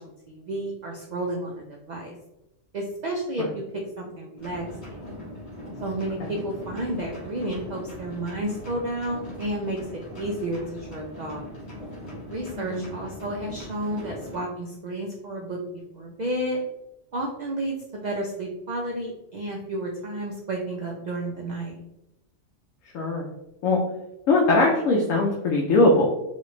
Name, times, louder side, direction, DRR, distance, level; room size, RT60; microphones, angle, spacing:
voice 1, 0.0-2.2 2.7-4.6 4.9-5.0 5.8-11.4 12.2-15.6 15.9-16.6 17.1-21.8, right 1 dB, 85° right, -1 dB, 0.3 m, -31 dB
sound 1, 4.4-14.4, left 1 dB, 55° left, 1.4 m, -40 dB
voice 2, 22.9-23.3 23.6-23.8 24.3-26.1, left 2 dB, 90° left, -1 dB, 1.0 m, -21 dB
3.1 x 2.4 x 3.0 m, 0.89 s
omnidirectional pair, 1.3 m